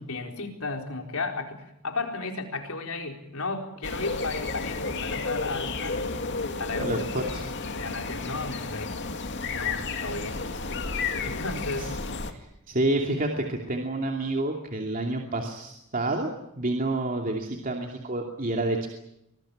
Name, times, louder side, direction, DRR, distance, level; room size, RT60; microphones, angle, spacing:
voice 1, 0.1-6.2 6.6-7.3 7.7-9.0 9.5-10.7 11.2-11.9, left 3 dB, 80° left, 3 dB, 4.4 m, -34 dB
sound 1, 3.8-12.3, left 4 dB, 55° left, 2.3 m, -32 dB
voice 2, 6.8-7.4 11.8-11.9 12.3-16.3 16.6-18.9, right 2 dB, 40° right, 1 dB, 2.7 m, -29 dB
24.5 x 20.0 x 8.8 m, 0.82 s
head